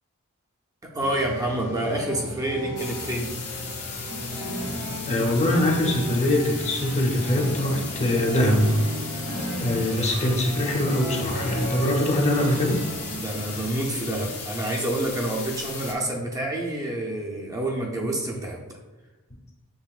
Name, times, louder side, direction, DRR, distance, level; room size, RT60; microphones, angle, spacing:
voice 1, 0.8-3.3 13.1-18.6, right 1 dB, 15° right, -2 dB, 0.5 m, -28 dB
sound 1, 1.0-13.6, right 1 dB, 75° right, 1.1 m, -35 dB
sound 2, 2.8-15.9, left 5 dB, 80° left, 1.1 m, -36 dB
voice 2, 5.1-8.8 9.6-12.8, left 1 dB, 30° left, 1 dB, 0.7 m, -23 dB
7.1 x 3.1 x 2.4 m, 1.1 s
head